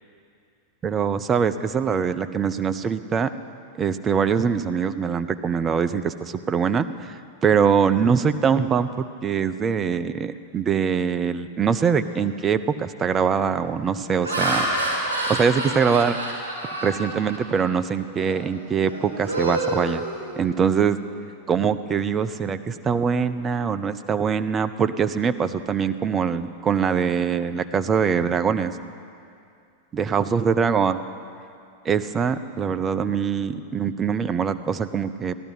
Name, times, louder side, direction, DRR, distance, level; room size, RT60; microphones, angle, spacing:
voice 1, 0.8-3.3 3.8-14.7 15.3-16.2 16.8-20.0 20.4-21.0 21.5-28.7 29.9-31.0 31.8-35.3, right 6 dB, 25° right, 11 dB, 0.5 m, -23 dB
Laughter, 12.1-12.4 13.0-13.3 13.9-17.7 18.2-18.4 18.8-20.7, right 1 dB, 65° right, 2.8 m, -28 dB
16.0 x 12.0 x 4.7 m, 2.4 s
figure-of-eight pair, 90°, 0 cm